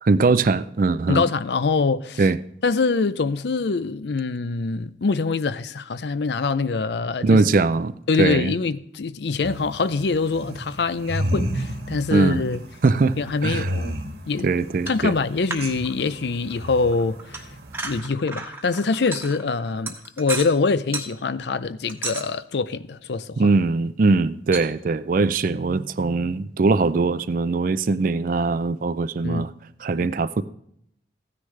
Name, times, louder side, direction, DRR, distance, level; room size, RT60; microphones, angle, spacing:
voice 1, 0.0-1.2 2.2-2.4 7.2-7.9 8.2-8.5 12.1-12.4 12.8-13.2 13.4-13.7 14.4-15.1 23.4-29.5 29.8-30.4, right 3 dB, 50° right, 0.4 m, -21 dB
voice 2, 1.1-2.3 2.6-7.4 8.1-12.6 13.2-14.0 14.3-14.5 14.9-17.4 17.8-23.4 29.2-29.5 30.0-30.1, left 4 dB, 65° left, 0.5 m, -24 dB
sound 1, 9.4-18.0, equal, 65° right, 1.6 m, -33 dB
sound 2, 12.7-13.0 13.3-13.4 14.7-15.1 15.5-16.2 16.5-20.6 20.9-21.1 21.9-22.3 24.5-24.6, right 3 dB, 10° right, 1.2 m, -34 dB
15.5 x 9.8 x 3.2 m
head